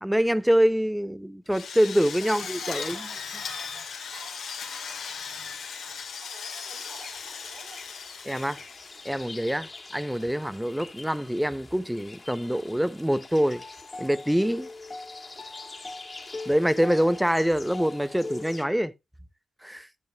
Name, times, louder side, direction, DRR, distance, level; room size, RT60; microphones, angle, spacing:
voice 1, 0.0-3.0 8.2-8.6 9.0-13.6 14.0-14.7 16.5-18.9 19.6-19.9, equal, 5° right, 0.8 m, -25 dB
Drill, 1.5-9.4, left 6 dB, 75° left, 2.3 m, -37 dB
voice 2, 2.2-4.4 6.2-7.8 17.0-17.2, right 4 dB, 85° right, 3.7 m, -49 dB
sound 1, 6.6-18.6, left 3 dB, 35° left, 2.2 m, -42 dB
9.8 x 8.5 x 2.5 m
supercardioid pair, 45°, 0 cm